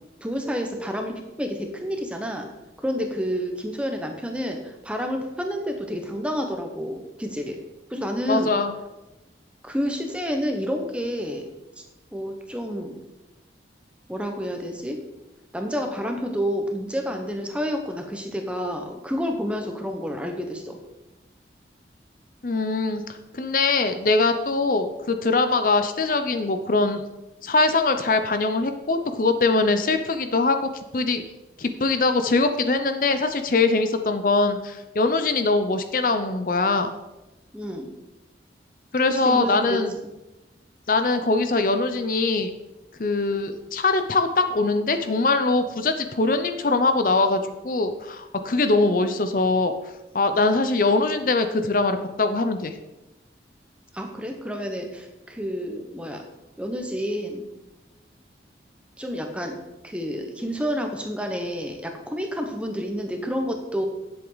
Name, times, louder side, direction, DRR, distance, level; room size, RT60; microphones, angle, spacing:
voice 1, 0.2-2.5 2.8-7.6 7.9-8.5 9.6-11.5 12.1-12.9 14.1-15.0 15.5-20.8 37.5-37.9 39.2-39.8 53.9-56.2 56.6-57.4 59.0-59.6 59.8-63.9, equal, 5° right, 3 dB, 1.1 m, -29 dB
voice 2, 8.3-8.7 22.4-23.0 23.3-27.0 27.4-30.6 30.9-31.2 31.6-36.9 38.9-39.9 40.9-42.5 43.0-49.7 50.1-52.7, left 3 dB, 50° left, 8 dB, 0.6 m, -22 dB
10.0 x 7.8 x 4.0 m, 0.99 s
head